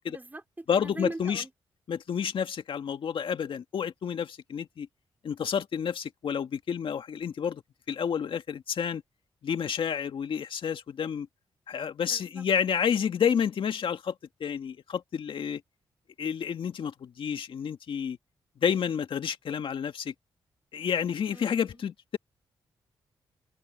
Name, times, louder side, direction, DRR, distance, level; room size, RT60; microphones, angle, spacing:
voice 1, 0.1-1.5 12.0-12.4 21.3-21.9, right 2 dB, 20° right, 4.6 m, -42 dB
voice 2, 0.7-1.4 1.9-4.9 5.2-7.6 7.9-9.0 9.4-11.3 11.7-14.1 14.4-15.6 16.2-18.2 18.6-20.1 20.7-22.2, left 7 dB, 70° left, 2.0 m, -30 dB
cardioid pair, 60°, 9 cm